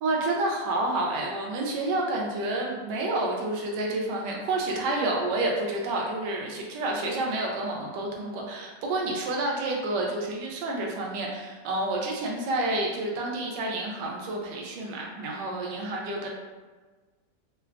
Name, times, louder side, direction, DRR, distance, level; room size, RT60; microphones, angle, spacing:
voice 1, 0.0-16.3, right 2 dB, 75° right, -1 dB, 1.2 m, -29 dB
3.6 x 2.2 x 2.3 m, 1.3 s
omnidirectional pair, 2.0 m